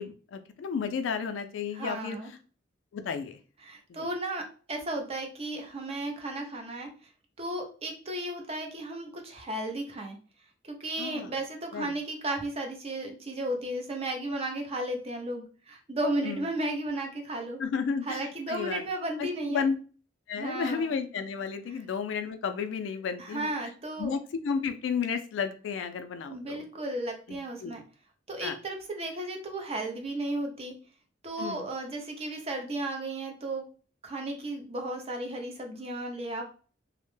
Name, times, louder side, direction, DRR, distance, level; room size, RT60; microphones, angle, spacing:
voice 1, 0.0-2.2 2.9-3.4 3.9-4.1 11.0-11.3 11.7-11.9 16.2-16.5 17.6-18.2 18.5-18.8 19.2-19.8 20.3-23.5 24.0-26.6 27.3-27.8 28.4-28.6 31.4-31.7, left 6 dB, 70° left, 9 dB, 0.3 m, -32 dB
voice 2, 1.7-2.3 3.6-4.4 4.7-6.9 7.4-10.2 10.6-17.6 18.1-19.6 20.4-21.0 23.2-24.1 26.3-27.8 28.3-30.7 31.2-33.7 34.0-36.4, right 1 dB, 30° right, 3 dB, 0.5 m, -34 dB
2.1 x 2.0 x 3.1 m, 0.38 s
head